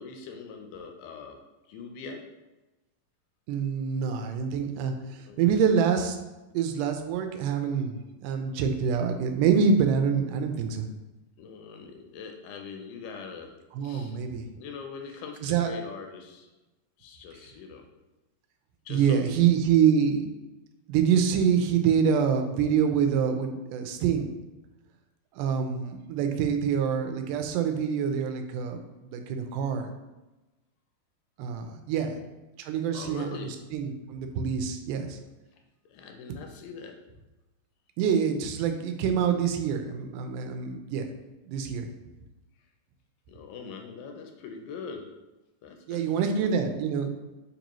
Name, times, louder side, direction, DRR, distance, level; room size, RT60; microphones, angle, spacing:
voice 1, 0.0-1.4 1.7-2.2 5.1-5.4 11.4-13.5 13.8-14.2 14.6-16.5 17.0-17.9 18.9-19.4 31.9-32.3 32.9-33.5 35.9-37.0 43.3-45.1 45.6-46.7, left 5 dB, 80° left, 4 dB, 2.0 m, -42 dB
voice 2, 3.5-6.2 6.5-10.9 13.8-14.5 15.4-15.7 18.9-20.3 20.9-24.3 25.3-29.9 31.4-32.2 32.6-35.2 38.0-41.1 41.5-41.9 45.9-47.1, right 7 dB, 80° right, 6 dB, 2.0 m, -26 dB
6.7 x 2.6 x 3.0 m, 1.1 s
omnidirectional pair, 4.0 m